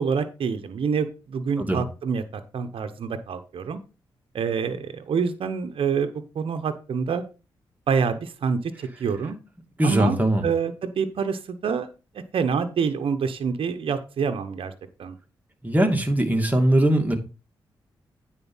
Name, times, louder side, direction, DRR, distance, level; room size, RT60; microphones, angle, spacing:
voice 1, 0.0-3.8 4.3-6.1 6.3-7.2 7.9-9.4 9.8-11.9 12.1-14.7 15.0-15.2, right 6 dB, 75° right, 8 dB, 1.0 m, -27 dB
voice 2, 9.8-10.4 15.6-17.1, right 1 dB, 20° right, 3 dB, 2.5 m, -20 dB
9.3 x 4.5 x 5.6 m, 0.32 s
cardioid pair, 50°, 9 cm